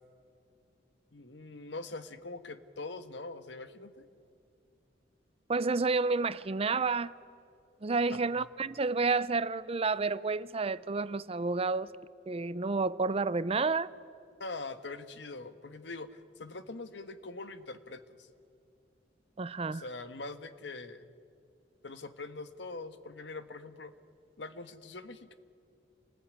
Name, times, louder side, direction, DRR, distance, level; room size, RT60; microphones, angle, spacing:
voice 1, 1.1-4.1 8.1-8.5 14.4-18.3 19.7-21.1 21.8-23.9 24.4-25.3, left 3 dB, 70° left, 1.4 m, -43 dB
voice 2, 5.5-7.1 7.8-11.9 12.3-13.9 19.4-19.8, right 4 dB, 35° right, 0.6 m, -30 dB
28.0 x 20.0 x 9.6 m
head